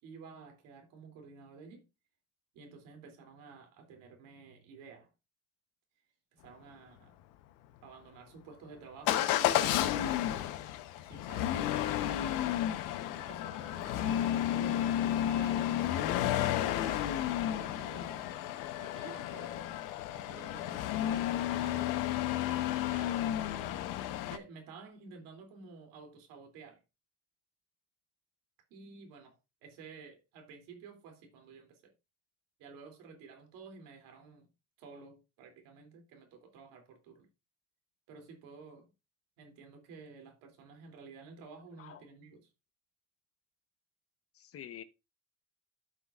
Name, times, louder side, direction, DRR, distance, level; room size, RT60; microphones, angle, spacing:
voice 1, 0.0-1.9 2.5-5.1 6.3-7.2 7.8-10.3 11.0-11.9 13.1-18.3 18.8-19.8 20.1-23.3 24.2-26.8 28.7-29.4 29.6-31.9 32.6-34.5 34.8-37.3 38.1-38.9 39.4-42.5, right 5 dB, 90° right, 2.9 m, -52 dB
Motor vehicle (road) / Engine starting / Accelerating revving vroom, 9.1-24.4, left 12 dB, 90° left, 1.0 m, -32 dB
voice 2, 44.4-44.8, left 10 dB, 45° left, 0.9 m, -47 dB
14.0 x 6.0 x 2.4 m
cardioid pair, 115°, 33 cm